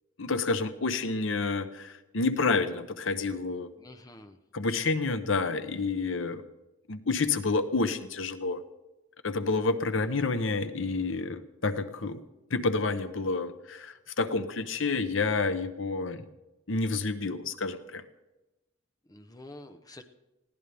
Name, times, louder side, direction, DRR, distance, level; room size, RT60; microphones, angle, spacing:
voice 1, 0.2-3.7 4.5-6.4 6.9-8.6 9.2-12.2 12.5-16.3 16.7-18.0, left 3 dB, 75° left, 10 dB, 1.0 m, -29 dB
voice 2, 3.8-4.4 19.1-20.0, left 1 dB, 20° left, 7 dB, 0.8 m, -48 dB
20.5 x 16.0 x 3.5 m, 1.0 s
head